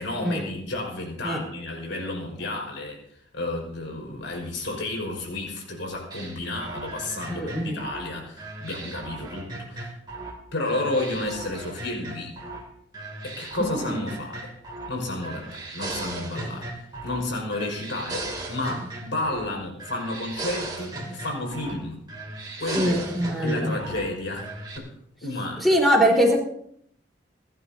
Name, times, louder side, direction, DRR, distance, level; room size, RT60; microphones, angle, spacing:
voice 1, 0.0-3.0 3.3-10.0 10.5-12.3 13.2-14.5 14.9-22.0 22.6-23.0 23.4-24.9 25.2-25.8, left 2 dB, 80° left, 0 dB, 4.9 m, -31 dB
sound 1, 6.1-10.4 10.7-12.6 12.9-15.0 15.2-17.3 17.5-19.5 19.8-21.8 22.1-24.1 24.4-24.8, right 2 dB, 20° right, 2.6 m, -37 dB
voice 2, 7.3-7.8 22.7-23.7 25.6-26.4, equal, ahead, -3 dB, 3.9 m, -22 dB
28.0 x 11.5 x 2.7 m, 0.69 s
head